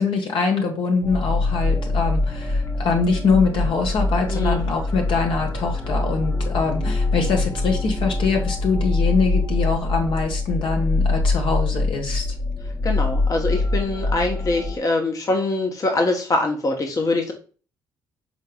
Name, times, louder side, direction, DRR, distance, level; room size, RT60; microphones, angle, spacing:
voice 1, 0.0-12.2, left 4 dB, 70° left, 2 dB, 1.3 m, -23 dB
sound 1, 1.0-14.8, left 2 dB, 20° left, 0.5 m, -24 dB
voice 2, 4.3-4.6 12.8-17.3, left 2 dB, 40° left, 3 dB, 0.9 m, -23 dB
5.2 x 3.9 x 2.3 m, 0.38 s
supercardioid pair, 65°, 9 cm